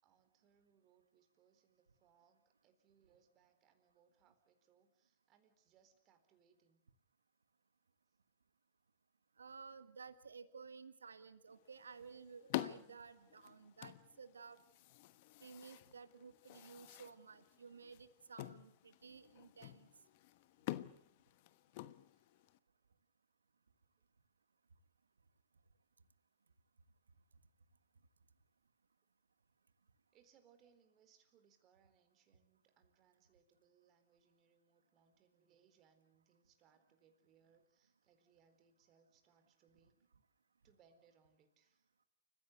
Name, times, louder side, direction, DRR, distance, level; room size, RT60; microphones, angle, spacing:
voice 1, 0.0-6.8 22.1-22.3 30.1-40.0 40.6-41.9, right 7 dB, 35° right, 9 dB, 4.2 m, -73 dB
voice 2, 9.4-14.6 15.4-19.9, right 5 dB, 85° right, 13 dB, 1.4 m, -55 dB
sound 1, 11.5-22.6, left 16 dB, 55° left, 1.1 m, -49 dB
29.0 x 15.5 x 8.2 m, 0.70 s
hypercardioid pair, 105°, 0 cm